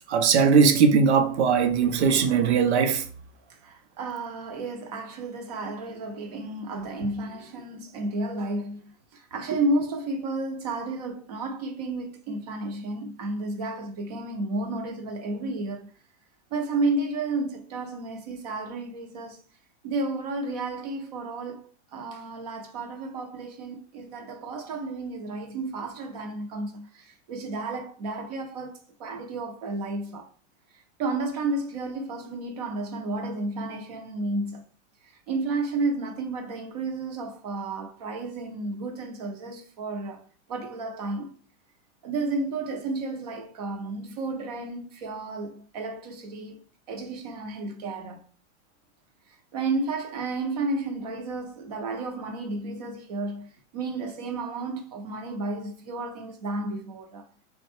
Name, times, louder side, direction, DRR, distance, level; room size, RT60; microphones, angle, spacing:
voice 1, 0.1-3.1, right 6 dB, 65° right, 0.8 m, -20 dB
voice 2, 3.6-15.9 16.5-19.4 19.8-30.3 31.0-34.6 35.3-41.3 42.0-46.6 46.9-48.2 49.5-57.2, right 2 dB, 35° right, 0.7 m, -32 dB
4.0 x 2.2 x 4.3 m
supercardioid pair, 180°, 36 cm